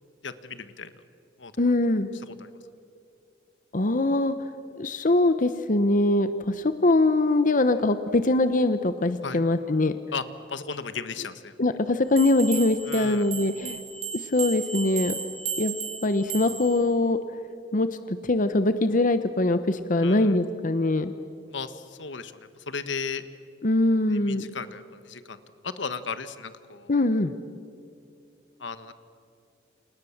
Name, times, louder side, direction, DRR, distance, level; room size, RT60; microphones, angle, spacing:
voice 1, 0.2-0.9 1.4-1.5 9.2-9.4 10.1-10.2 10.5-11.5 12.9-13.3 20.0-20.3 21.5-23.2 24.1-25.4 25.6-26.9 28.6-28.9, left 5 dB, 75° left, 12 dB, 1.4 m, -35 dB
voice 2, 1.6-2.1 3.7-4.5 4.8-9.9 11.6-13.8 14.1-15.1 15.6-15.8 16.0-17.2 17.7-21.1 23.6-24.5 26.9-27.3, left 2 dB, 45° left, 10 dB, 0.9 m, -23 dB
sound 1, 12.2-16.8, right 6 dB, 35° right, 4.5 m, -35 dB
29.0 x 28.0 x 7.3 m, 2.4 s
head